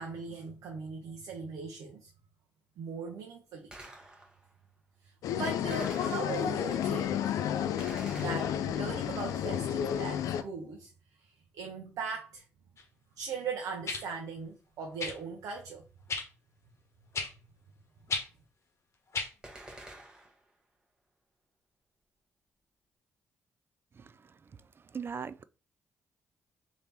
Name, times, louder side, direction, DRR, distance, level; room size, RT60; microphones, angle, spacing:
voice 1, 0.0-2.1 2.8-3.7 5.0-7.3 8.2-12.4 13.2-15.8, right 5 dB, 75° right, 0.7 m, -39 dB
Gunshot gunfire, 3.7-4.5 5.7-6.7 7.8-9.0 19.4-20.5, right 1 dB, 15° right, 1.3 m, -49 dB
sound 1, 5.2-10.4, left 9 dB, 75° left, 0.4 m, -31 dB
sound 2, 12.8-12.9 13.9-14.0 15.0-15.2 16.1-16.3 17.1-17.3 18.1-18.3 19.1-19.3 20.3-20.4, left 4 dB, 50° left, 1.1 m, -33 dB
voice 2, 24.0-24.3 24.9-25.4, right 6 dB, 40° right, 0.4 m, -39 dB
3.4 x 2.9 x 4.1 m
supercardioid pair, 55°, 6 cm